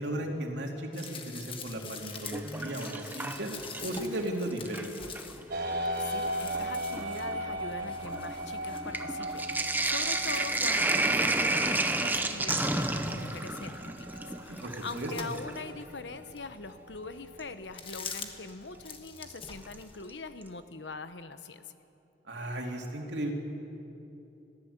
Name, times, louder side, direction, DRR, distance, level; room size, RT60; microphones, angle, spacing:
voice 1, 0.0-3.5 3.8-4.9 14.5-15.1 22.3-23.3, right 1 dB, 85° right, 1 dB, 2.8 m, -35 dB
sound 1, 0.9-12.3 12.6-15.8 16.4-16.5 17.6-18.5 18.8-20.1, left 5 dB, 30° left, 1.5 m, -46 dB
Sink (filling or washing), 2.1-4.2 4.5-5.3 6.1-6.2 6.5-15.6 17.4-17.5 19.3-19.7 20.1-20.2 20.4-20.5, right 2 dB, 10° right, 0.9 m, -31 dB
sound 2, 5.5-19.1, right 1 dB, 60° right, 4.2 m, -39 dB
voice 2, 6.0-21.6, left 3 dB, 90° left, 11 dB, 1.0 m, -42 dB
22.0 x 15.5 x 8.1 m, 2.9 s
head